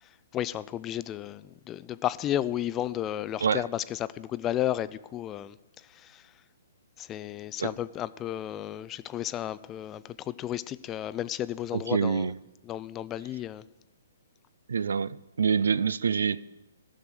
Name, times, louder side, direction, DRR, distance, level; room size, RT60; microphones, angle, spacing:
voice 1, 0.0-6.3 7.0-12.3 12.7-13.7, left 12 dB, 20° left, 0.3 m, -33 dB
voice 2, 11.7-12.3 14.7-16.4, right 6 dB, 75° right, 0.3 m, -26 dB
13.0 x 6.6 x 6.2 m
hypercardioid pair, 135°, 0 cm